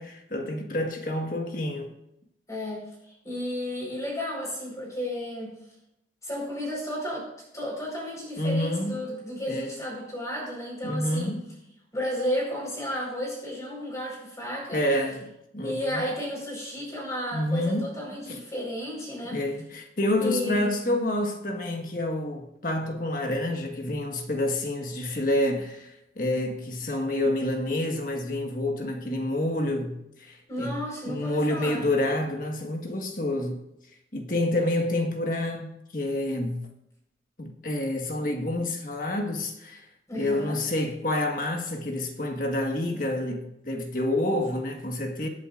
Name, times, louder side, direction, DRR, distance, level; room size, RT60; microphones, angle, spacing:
voice 1, 0.0-1.9 8.4-9.1 9.5-9.7 10.8-11.5 14.7-16.0 17.3-17.9 18.3-18.4 19.3-30.8 31.1-33.6 34.1-36.7 37.4-39.9 40.1-45.3, left 1 dB, 50° left, 1.6 m, -28 dB
voice 2, 2.5-5.5 6.2-7.3 7.5-11.3 11.9-14.8 15.6-19.4 20.2-20.7 30.5-31.9 40.1-40.6, equal, 20° left, 4.8 m, -33 dB
22.0 x 8.2 x 2.6 m
head